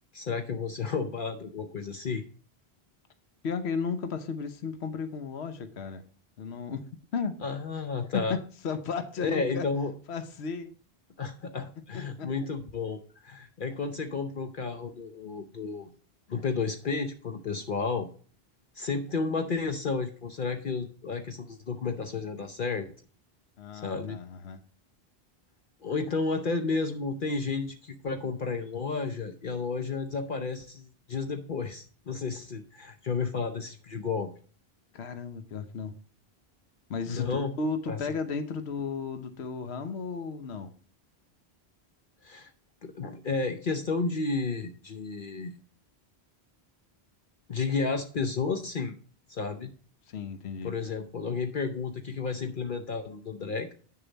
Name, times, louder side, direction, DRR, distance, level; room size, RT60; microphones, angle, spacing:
voice 1, 0.1-2.2 7.4-8.4 9.2-9.9 11.2-15.9 16.3-18.1 18.7-22.9 23.7-24.2 25.8-34.3 37.1-37.5 37.9-38.0 42.2-42.5 42.8-45.5 47.5-48.9 49.3-49.7 50.6-53.7, left 4 dB, 55° left, 6 dB, 1.0 m, -32 dB
voice 2, 3.4-6.0 6.4-6.8 7.1-7.4 8.1-9.6 10.1-10.7 11.9-12.3 23.6-24.6 34.9-35.9 36.9-40.7 50.1-50.7, left 5 dB, 80° left, 9 dB, 1.1 m, -34 dB
9.0 x 6.8 x 4.0 m, 0.41 s
omnidirectional pair, 1.1 m